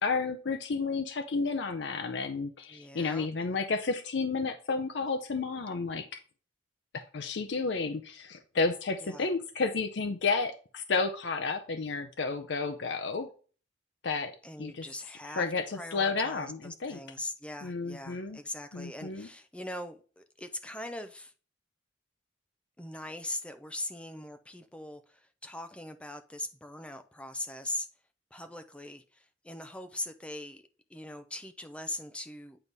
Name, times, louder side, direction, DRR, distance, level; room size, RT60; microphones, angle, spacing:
voice 1, 0.0-6.2 6.9-13.3 14.0-14.3 14.6-14.8 15.4-16.5 16.8-17.0 17.6-18.4 18.7-19.3, left 4 dB, 70° left, 0.6 m, -31 dB
voice 2, 2.7-3.3 9.0-9.3 14.4-15.5 15.7-21.3 22.8-27.9 28.3-30.6 30.9-32.6, left 1 dB, 5° left, 0.5 m, -41 dB
8.9 x 4.0 x 3.4 m
head